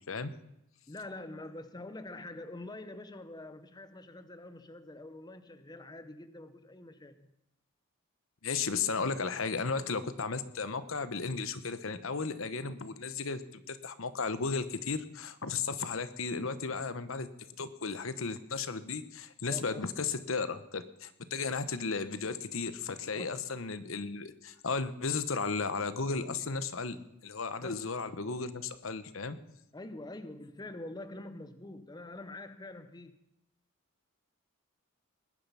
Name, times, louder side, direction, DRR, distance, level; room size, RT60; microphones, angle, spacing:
voice 1, 0.9-7.3 19.4-19.8 23.1-23.4 27.6-27.9 29.7-33.2, left 2 dB, 20° left, 11 dB, 0.7 m, -45 dB
voice 2, 8.4-17.3 17.6-27.0 27.2-29.4, left 4 dB, 70° left, 12 dB, 1.0 m, -34 dB
20.0 x 10.5 x 5.7 m, 0.80 s
head